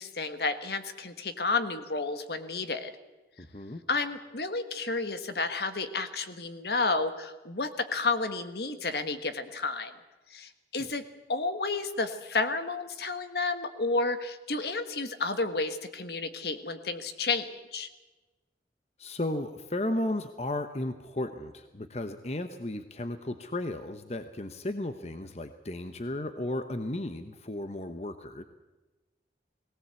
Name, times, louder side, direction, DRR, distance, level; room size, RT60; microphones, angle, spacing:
voice 1, 0.0-2.9 3.9-9.9 10.3-11.0 11.3-17.9, left 3 dB, 65° left, 9 dB, 1.6 m, -31 dB
voice 2, 3.4-3.8 10.8-10.9 19.0-28.4, left 1 dB, 35° left, 9 dB, 1.0 m, -34 dB
19.0 x 18.0 x 8.3 m, 1.1 s
head